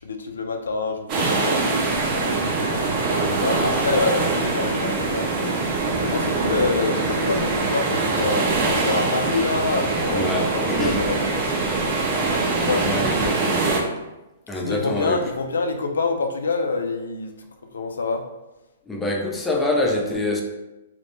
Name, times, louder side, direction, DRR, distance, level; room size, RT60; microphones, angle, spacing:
voice 1, 0.0-5.6 6.0-12.0 12.5-12.9 14.5-17.3 17.7-18.2, left 3 dB, 85° left, 5 dB, 0.3 m, -27 dB
sound 1, 1.1-13.8, right 3 dB, 35° right, 0.5 m, -23 dB
voice 2, 10.1-11.0 12.5-13.7 14.5-15.2 18.9-20.4, left 2 dB, 10° left, 0 dB, 0.4 m, -26 dB
2.1 x 2.0 x 3.0 m, 1.0 s
hypercardioid pair, 130°, 0 cm